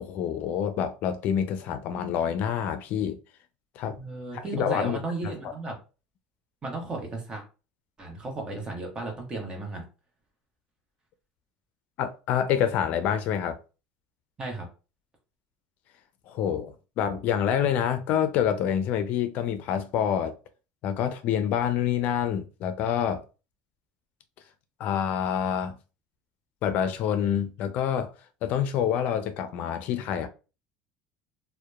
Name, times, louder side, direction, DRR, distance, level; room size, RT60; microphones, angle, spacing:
voice 1, 0.0-3.2 3.8-4.0 4.3-5.3 12.0-13.6 16.3-20.3 20.8-23.2 24.8-25.8 26.6-28.1 28.4-30.3, left 9 dB, 60° left, 0.4 m, -27 dB
voice 2, 4.0-5.7 6.6-7.4 8.0-9.8 14.4-14.7, right 3 dB, 30° right, 1.0 m, -34 dB
2.7 x 2.1 x 2.3 m
supercardioid pair, 100°, 3 cm